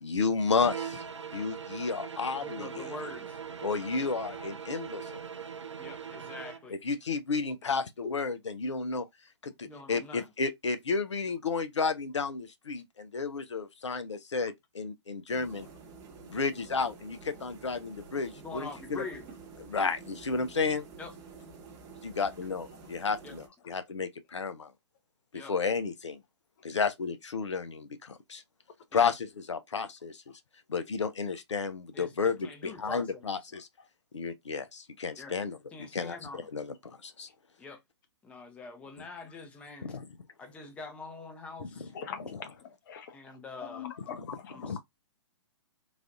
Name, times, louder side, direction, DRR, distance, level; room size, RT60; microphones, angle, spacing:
voice 1, 0.0-1.0 1.3-2.9 3.6-5.2 6.8-9.0 9.4-15.7 16.2-19.0 19.7-20.8 22.0-24.7 25.5-26.2 26.6-28.4 28.9-30.2 30.7-33.7 34.1-35.6 35.9-36.7 37.0-37.3 39.8-40.0 41.8-41.9 44.1-44.3 44.6-44.8, left 5 dB, 80° left, 0.6 m, -32 dB
sound 1, 0.5-6.7, right 7 dB, 85° right, 0.4 m, -41 dB
voice 2, 2.4-3.4 5.8-6.8 9.6-10.3 18.3-19.3 21.0-21.1 23.2-23.3 25.3-25.5 28.9-29.1 31.9-33.3 35.2-35.4 35.7-36.5 37.6-37.8 38.2-40.0 40.4-42.0 43.1-43.9 44.5-44.8, left 3 dB, 10° left, 0.5 m, -44 dB
sound 2, 15.3-23.5, right 4 dB, 25° right, 0.8 m, -50 dB
voice 3, 41.9-43.1 43.6-44.8, left 7 dB, 45° left, 0.7 m, -42 dB
3.3 x 2.3 x 2.5 m
figure-of-eight pair, 125°, 15 cm